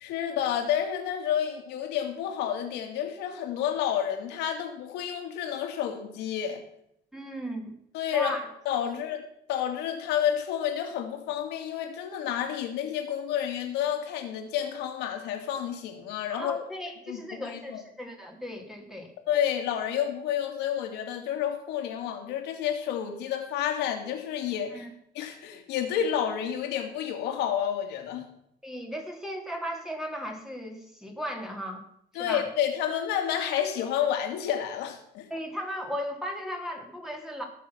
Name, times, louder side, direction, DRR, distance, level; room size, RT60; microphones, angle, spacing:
voice 1, 0.0-6.6 7.9-8.4 8.7-9.2 9.5-16.6 17.1-17.8 19.3-24.8 25.1-28.2 32.1-35.2, left 9 dB, 90° left, 4 dB, 2.5 m, -30 dB
voice 2, 7.1-7.7 8.1-8.4 8.8-9.0 16.3-19.1 24.7-24.9 28.6-31.8 32.2-32.5 35.3-37.4, equal, ahead, 1 dB, 3.0 m, -36 dB
18.5 x 6.7 x 6.0 m, 0.71 s
cardioid pair, 110°, 17 cm